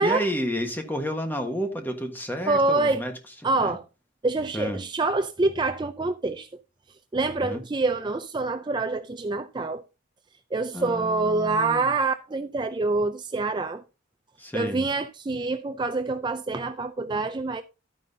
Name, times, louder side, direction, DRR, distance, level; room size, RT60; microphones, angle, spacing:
voice 1, 0.0-3.1 3.6-3.8 4.5-4.8 7.4-7.6 10.7-11.9 14.4-14.8, equal, 10° left, 1.4 m, -31 dB
voice 2, 2.5-3.1 3.4-3.8 4.2-6.5 7.1-9.8 10.5-13.8 14.5-17.6, right 3 dB, 20° right, 0.4 m, -26 dB
11.5 x 9.2 x 2.8 m
head